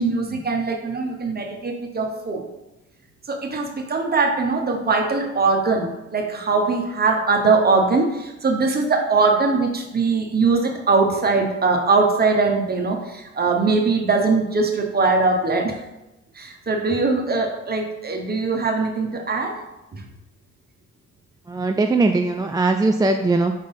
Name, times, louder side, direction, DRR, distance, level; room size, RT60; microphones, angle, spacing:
voice 1, 0.0-2.4 3.3-15.8 16.4-19.5 19.9-20.0, right 4 dB, 30° right, 2 dB, 1.2 m, -21 dB
voice 2, 21.5-23.5, right 3 dB, 15° right, 4 dB, 0.3 m, -20 dB
5.1 x 4.0 x 5.5 m, 0.96 s
cardioid pair, 90°, 30 cm